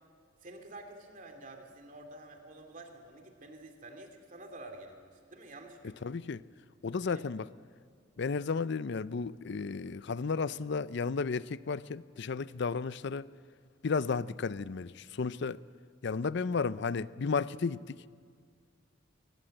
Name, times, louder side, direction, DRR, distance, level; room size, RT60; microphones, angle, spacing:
voice 1, 0.4-5.0 5.3-6.0 7.1-7.3 8.2-8.4, right 2 dB, 40° right, 2.6 m, -49 dB
voice 2, 6.0-6.4 6.8-7.5 8.2-13.3 13.8-15.6 16.0-18.0, left 5 dB, 60° left, 0.5 m, -33 dB
22.0 x 19.5 x 7.8 m
head